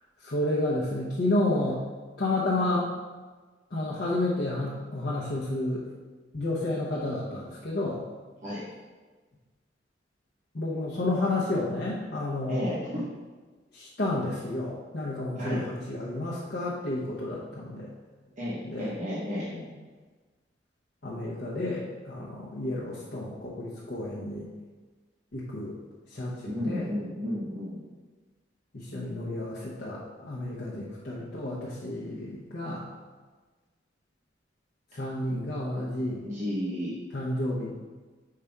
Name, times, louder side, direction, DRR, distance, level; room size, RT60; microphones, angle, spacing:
voice 1, 0.2-1.8 2.2-2.9 3.7-5.8 6.3-8.0 10.5-12.8 13.7-17.9 18.6-18.9 21.0-24.5 25.3-25.7 26.1-26.9 28.7-32.9 34.9-36.2 37.1-37.7, left 2 dB, 60° left, -6 dB, 0.8 m, -31 dB
voice 2, 12.5-13.1 15.4-15.6 18.4-19.6 26.5-27.8 36.2-36.9, equal, 40° right, -8 dB, 1.1 m, -32 dB
5.6 x 5.0 x 3.5 m, 1.3 s
head